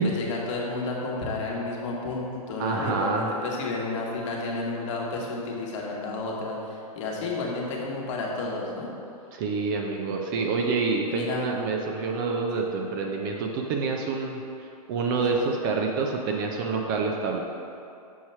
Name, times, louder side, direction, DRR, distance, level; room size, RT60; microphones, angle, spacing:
voice 1, 0.0-8.9 11.1-11.5 12.5-12.6 15.1-15.2, left 3 dB, 50° left, -2 dB, 1.2 m, -31 dB
voice 2, 2.6-3.3 9.3-17.4, right 4 dB, 35° right, 2 dB, 0.4 m, -27 dB
6.4 x 2.9 x 5.6 m, 2.6 s
hypercardioid pair, 150°, 20 cm